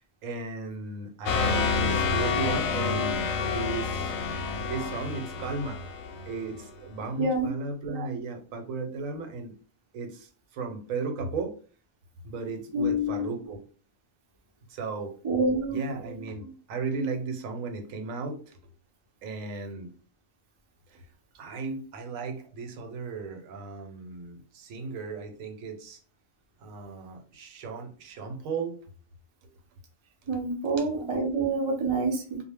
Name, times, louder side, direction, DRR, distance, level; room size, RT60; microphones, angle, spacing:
voice 1, 0.0-4.1 4.6-5.8 6.3-9.5 9.9-11.5 12.2-13.6 14.7-15.1 15.7-18.6 19.2-19.9 20.9-21.0 21.4-26.0 26.6-28.8 29.4-29.5 30.8-31.2 31.8-32.0, right 4 dB, 90° right, 5 dB, 1.0 m, -35 dB
sound 1, 1.3-6.7, left 4 dB, 65° left, 0.8 m, -28 dB
voice 2, 7.2-7.5 12.7-13.3 15.2-15.9 30.3-32.4, right 2 dB, 50° right, 1 dB, 0.3 m, -27 dB
2.1 x 2.1 x 3.3 m, 0.39 s
omnidirectional pair, 1.4 m